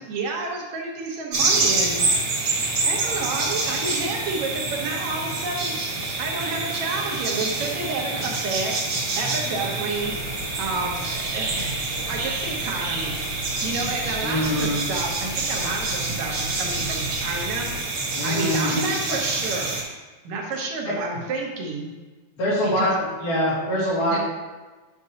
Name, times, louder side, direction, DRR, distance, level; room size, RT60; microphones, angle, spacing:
voice 1, 0.0-2.0 2.3-2.5 2.8-5.7 6.2-8.7 9.2-10.1 10.6-11.8 12.1-13.2 13.6-17.7 18.2-19.8 20.2-21.9 22.6-23.0 24.0-24.2, right 3 dB, 70° right, 0 dB, 2.2 m, -30 dB
sound 1, 1.3-19.8, right 3 dB, 45° right, 1.7 m, -27 dB
sound 2, 9.9-17.8, left 3 dB, 60° left, 2.6 m, -39 dB
voice 2, 14.2-14.8 18.1-18.8 20.9-21.0 22.4-24.2, equal, 80° left, -7 dB, 3.8 m, -24 dB
9.6 x 6.0 x 2.8 m, 1.3 s
omnidirectional pair, 3.5 m